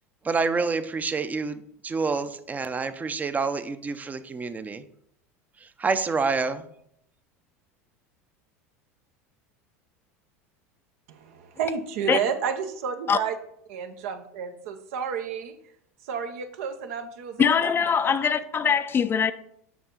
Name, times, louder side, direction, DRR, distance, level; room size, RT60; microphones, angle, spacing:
voice 1, 0.2-4.8 5.6-6.7, right 4 dB, 20° right, 0.6 m, -28 dB
voice 2, 11.1-13.3 13.7-15.5 16.0-17.4 18.7-18.8, right 7 dB, 70° right, 0.8 m, -31 dB
voice 3, 17.4-19.3, left 7 dB, 30° left, 0.4 m, -22 dB
7.1 x 5.5 x 3.8 m
hypercardioid pair, 85°, 8 cm